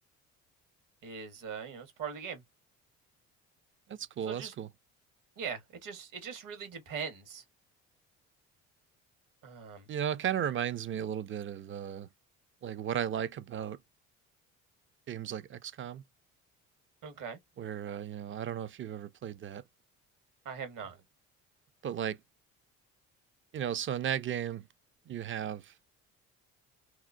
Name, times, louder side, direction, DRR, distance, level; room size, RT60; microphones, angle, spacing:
voice 1, 1.0-2.4 4.3-4.5 5.4-7.4 9.4-9.8 17.0-17.4 20.4-21.0, right 6 dB, 65° right, 1.4 m, -41 dB
voice 2, 3.9-4.7 9.9-12.1 12.6-13.8 15.1-16.0 17.6-19.6 21.8-22.2 23.5-24.7 25.1-25.7, right 9 dB, 35° right, 0.5 m, -35 dB
2.8 x 2.1 x 2.5 m
supercardioid pair, 70°, 35 cm